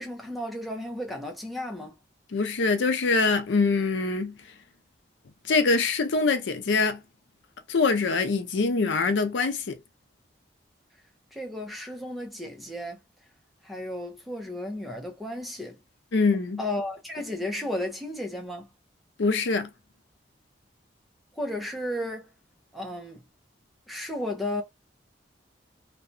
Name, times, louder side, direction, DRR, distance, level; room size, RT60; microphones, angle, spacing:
voice 1, 0.0-1.9 11.3-13.0 13.6-15.8 16.6-18.7 21.4-22.3 22.7-23.2 23.9-24.6, left 1 dB, ahead, 0.5 m, -33 dB
voice 2, 2.3-4.3 5.5-7.0 7.7-9.8 16.1-16.6 19.2-19.7, left 4 dB, 85° left, 0.5 m, -24 dB
2.7 x 2.2 x 2.5 m
head